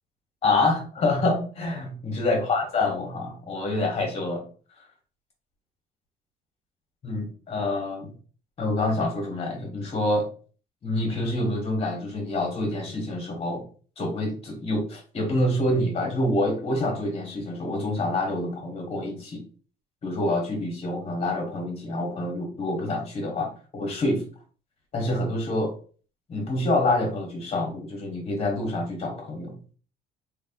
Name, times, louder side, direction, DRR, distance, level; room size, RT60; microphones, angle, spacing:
voice 1, 0.4-4.4 4.8-4.9 7.0-8.1 8.6-10.3 10.8-13.6 14.0-19.4 20.0-24.2 24.9-25.7 26.3-29.6, left 2 dB, 35° left, 1 dB, 1.6 m, -27 dB
3.5 x 3.3 x 2.5 m, 0.41 s
cardioid pair, 110°, 17 cm